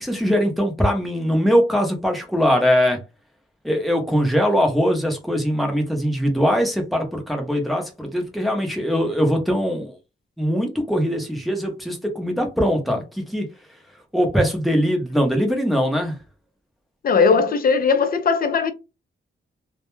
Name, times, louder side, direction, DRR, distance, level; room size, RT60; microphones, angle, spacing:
voice 1, 0.0-3.0 3.6-10.0 10.4-13.5 14.1-16.2, equal, ahead, 0.6 m, -21 dB
voice 2, 17.0-18.7, left 5 dB, 45° left, 0.4 m, -18 dB
2.2 x 2.1 x 3.0 m
wide cardioid pair, 150°, 21 cm